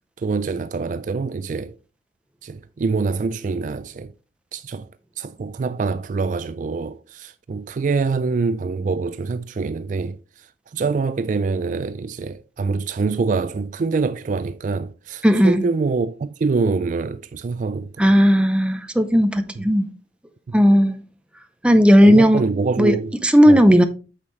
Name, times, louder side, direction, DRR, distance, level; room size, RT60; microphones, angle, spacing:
voice 1, 0.2-1.8 2.4-4.1 4.5-4.9 5.2-18.0 20.5-20.6 22.0-23.1 23.5-23.8, right 4 dB, 45° right, 0.3 m, -25 dB
voice 2, 15.2-15.6 18.0-19.9 20.5-21.0 21.6-22.4 22.8-22.9 23.2-23.8, equal, 5° right, 0.6 m, -14 dB
8.8 x 6.3 x 3.1 m
head